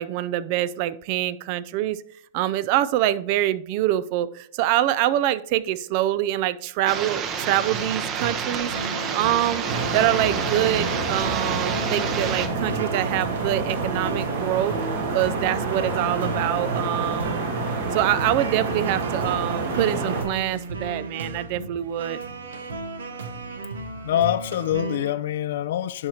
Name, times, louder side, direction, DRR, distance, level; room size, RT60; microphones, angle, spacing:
voice 1, 0.0-2.0 2.3-8.7 9.1-9.6 9.9-14.8 15.1-17.5 17.9-22.2, right 13 dB, 50° right, 0.4 m, -25 dB
sound 1, 6.9-12.5, right 7 dB, 35° right, 0.9 m, -29 dB
sound 2, 7.4-25.1, right 3 dB, 90° right, 1.0 m, -35 dB
sound 3, 9.6-20.2, right 3 dB, 70° right, 1.8 m, -28 dB
voice 2, 24.0-26.1, left 12 dB, 70° left, 0.4 m, -25 dB
10.5 x 4.8 x 2.8 m
hypercardioid pair, 125°, 0 cm